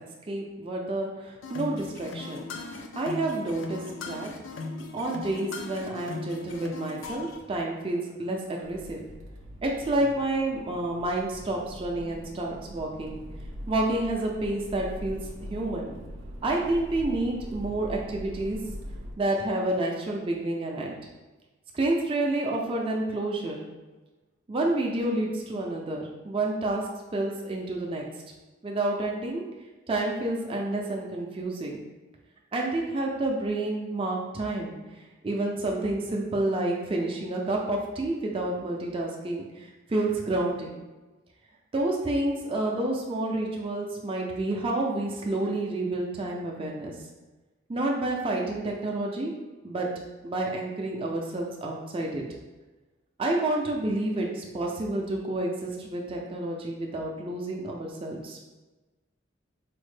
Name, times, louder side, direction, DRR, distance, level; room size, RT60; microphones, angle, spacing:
voice 1, 0.3-2.4 2.9-4.3 4.9-9.0 9.6-13.2 13.7-15.9 16.4-18.6 19.2-21.0 21.7-23.6 24.5-26.8 27.1-28.0 28.6-29.4 29.9-31.8 32.5-34.7 35.2-40.7 41.7-46.9 47.7-49.3 49.6-49.9 50.2-52.2 53.2-58.4, right 2 dB, 30° right, -1 dB, 0.4 m, -29 dB
sound 1, 1.4-7.4, left 3 dB, 85° left, 0.4 m, -38 dB
Accelerating revving vroom, 8.6-19.1, equal, 90° right, 0.5 m, -42 dB
4.2 x 2.0 x 3.2 m, 1.2 s
head